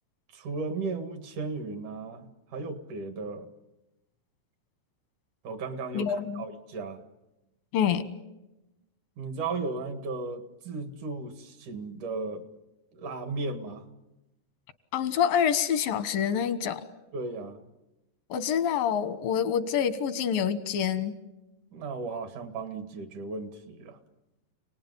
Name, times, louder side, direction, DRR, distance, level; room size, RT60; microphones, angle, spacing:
voice 1, 0.3-3.5 5.4-7.0 9.2-12.4 12.9-13.8 17.1-17.6 21.7-24.0, right 3 dB, 65° right, 8 dB, 3.3 m, -35 dB
voice 2, 5.9-6.5 7.7-8.1 14.9-16.8 18.3-21.2, left 8 dB, 85° left, 12 dB, 3.0 m, -27 dB
29.0 x 19.5 x 9.6 m, 1.0 s
omnidirectional pair, 3.9 m